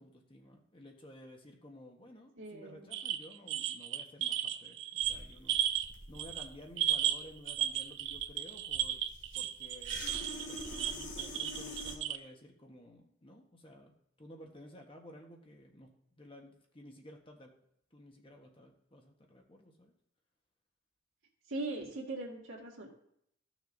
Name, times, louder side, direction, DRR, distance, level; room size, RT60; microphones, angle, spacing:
voice 1, 0.0-5.6 6.1-9.0 9.3-10.2 10.5-13.9 14.2-15.9 16.2-17.5 17.9-19.9, left 1 dB, 25° left, 2 dB, 1.2 m, -54 dB
voice 2, 2.4-2.8 21.5-22.9, right 2 dB, 80° right, -2 dB, 2.1 m, -40 dB
sound 1, 2.9-5.9 6.1-6.5 6.8-12.2, right 11 dB, 65° right, 0.5 m, -34 dB
sound 2, 5.0-12.0, left 1 dB, 65° left, 2.0 m, -46 dB
14.5 x 6.3 x 2.6 m, 0.72 s
head